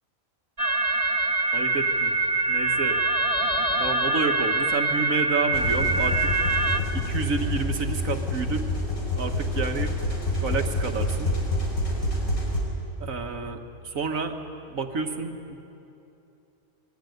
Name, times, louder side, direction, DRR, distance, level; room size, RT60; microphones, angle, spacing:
sound 1, 0.6-6.8, right 2 dB, 25° right, 1.5 m, -24 dB
voice 1, 1.5-2.1 2.5-3.0 3.8-6.3 6.9-8.7 9.2-9.9 10.4-11.3 13.0-14.3 14.7-15.6, right 4 dB, 75° right, 6 dB, 2.0 m, -30 dB
sound 2, 5.5-12.6, left 1 dB, 90° left, 5.3 m, -27 dB
25.0 x 21.5 x 9.5 m, 2.8 s
omnidirectional pair, 1.4 m